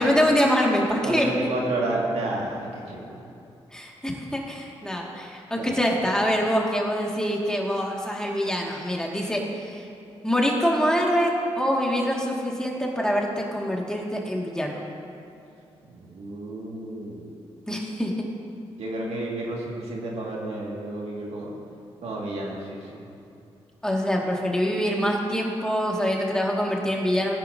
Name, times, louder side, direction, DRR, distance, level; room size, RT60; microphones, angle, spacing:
voice 1, 0.0-1.3 3.7-9.8 10.2-14.8 17.7-18.1 23.8-27.4, equal, 5° left, -2 dB, 2.0 m, -25 dB
voice 2, 1.0-3.2 5.5-5.8 15.8-17.3 18.8-21.6 22.0-23.0, right 2 dB, 75° right, -3 dB, 2.0 m, -31 dB
17.5 x 10.0 x 2.7 m, 2.7 s
cardioid pair, 70°, 11 cm